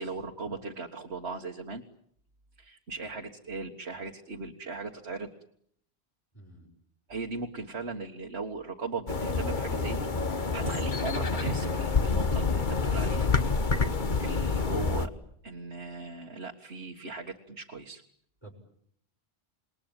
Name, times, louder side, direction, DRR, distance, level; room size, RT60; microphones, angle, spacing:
voice 1, 0.0-1.8 2.6-5.3 7.1-13.3 14.2-15.1 15.4-18.0, right 4 dB, 80° right, 1 dB, 2.0 m, -38 dB
voice 2, 6.3-6.7 18.4-18.5, right 1 dB, 20° left, -3 dB, 6.4 m, -50 dB
sound 1, 9.1-15.1, left 4 dB, 50° left, 1.4 m, -28 dB
28.5 x 21.0 x 8.9 m, 0.69 s
omnidirectional pair, 1.1 m